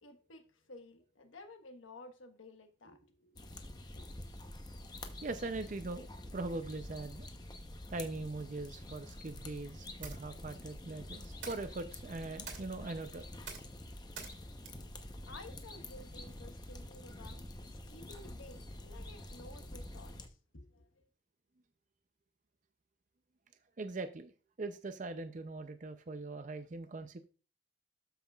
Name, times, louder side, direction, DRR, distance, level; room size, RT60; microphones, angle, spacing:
voice 1, 0.0-4.0 14.8-14.9 15.3-21.0, left 2 dB, 85° left, 1.3 m, -54 dB
sound 1, 3.4-20.3, left 1 dB, 20° left, 0.8 m, -48 dB
voice 2, 5.2-7.3 7.9-13.3 23.8-24.3 24.6-27.2, right 3 dB, 40° right, 0.5 m, -41 dB
sound 2, 10.0-16.1, right 5 dB, 70° right, 2.2 m, -52 dB
12.5 x 5.7 x 2.3 m
head